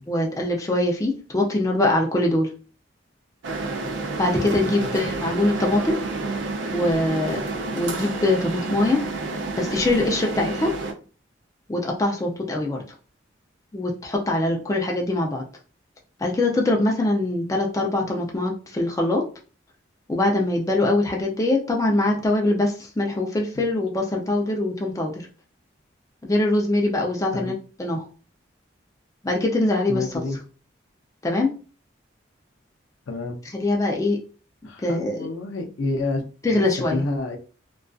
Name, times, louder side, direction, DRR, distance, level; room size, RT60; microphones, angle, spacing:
voice 1, 0.1-2.5 4.2-6.0 6.7-7.4 7.7-9.0 9.6-10.7 11.7-12.8 13.7-15.4 16.2-19.2 20.1-25.2 26.2-28.1 29.2-30.1 31.2-31.5 33.5-34.2 34.8-35.3 36.4-37.0, left 2 dB, 15° left, 0.3 m, -23 dB
sound 1, 3.4-10.9, right 3 dB, 75° right, 0.5 m, -29 dB
voice 2, 29.9-30.4 33.1-33.4 34.6-37.4, left 2 dB, 85° left, 0.5 m, -29 dB
2.4 x 2.3 x 2.3 m
head